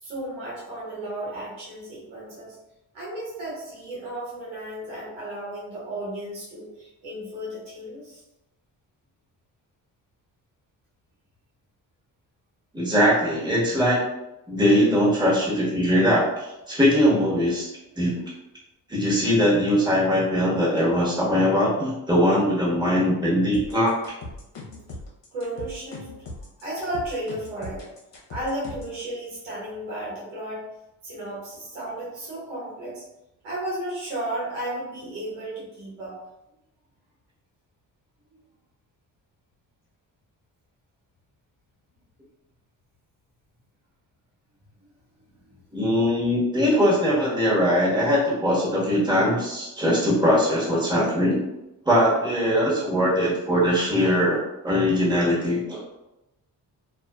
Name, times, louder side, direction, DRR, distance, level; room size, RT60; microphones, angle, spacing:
voice 1, 0.0-2.6 2.9-8.2 25.3-27.9 28.3-30.6 31.0-33.0 33.4-36.2 38.3-38.4 45.3-45.6, right 1 dB, 90° right, -8 dB, 1.2 m, -34 dB
voice 2, 12.7-14.0 14.5-17.7 18.0-18.2 18.9-24.0 45.7-51.4 51.8-55.8, equal, 10° right, -7 dB, 1.3 m, -21 dB
sound 1, 23.5-29.0, left 2 dB, 65° left, 0.9 m, -39 dB
2.5 x 2.3 x 2.3 m, 0.92 s
supercardioid pair, 45°, 46 cm